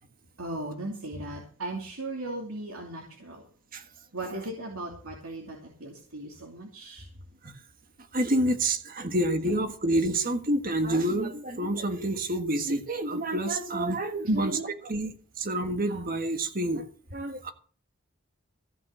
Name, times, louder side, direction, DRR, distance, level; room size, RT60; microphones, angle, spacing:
voice 1, 0.4-3.4 4.1-7.0 14.2-14.4, right 1 dB, 85° right, 2.7 m, -36 dB
voice 2, 8.1-16.9 17.1-17.5, right 1 dB, 40° right, 1.6 m, -28 dB
15.5 x 5.8 x 8.8 m
head